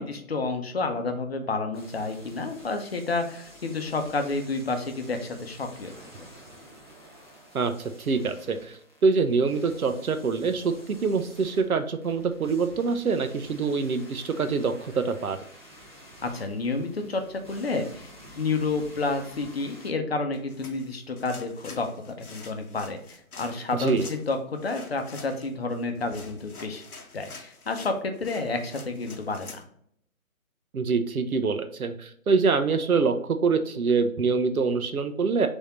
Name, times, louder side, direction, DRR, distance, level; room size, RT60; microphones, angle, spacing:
voice 1, 0.0-6.3 16.2-18.1 18.4-26.8 27.1-29.7, left 3 dB, 45° left, 5 dB, 0.7 m, -30 dB
sound 1, 1.7-19.9, equal, 20° right, 0.6 m, -50 dB
voice 2, 8.0-15.4 23.8-24.1 30.7-35.5, right 4 dB, 80° right, 8 dB, 0.8 m, -25 dB
sound 2, 20.3-29.6, left 4 dB, 90° left, 1.0 m, -47 dB
3.6 x 3.5 x 4.1 m, 0.67 s
figure-of-eight pair, 160°, 43 cm